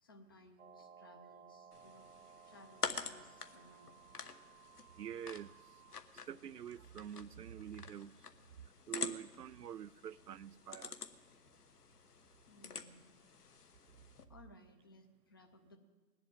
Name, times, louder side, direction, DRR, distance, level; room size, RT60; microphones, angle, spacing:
voice 1, 0.0-2.1 2.4-4.0 12.5-13.1 14.3-15.8, left 1 dB, 15° left, 5 dB, 0.6 m, -61 dB
sound 1, 0.6-6.0, right 8 dB, 45° right, 1.1 m, -60 dB
sound 2, 1.7-14.2, left 5 dB, 65° left, 1.3 m, -48 dB
voice 2, 5.0-5.6 6.3-8.3 8.9-11.0, right 9 dB, 70° right, 21 dB, 0.6 m, -46 dB
19.5 x 8.0 x 9.0 m, 1.3 s
figure-of-eight pair, 130°, 49 cm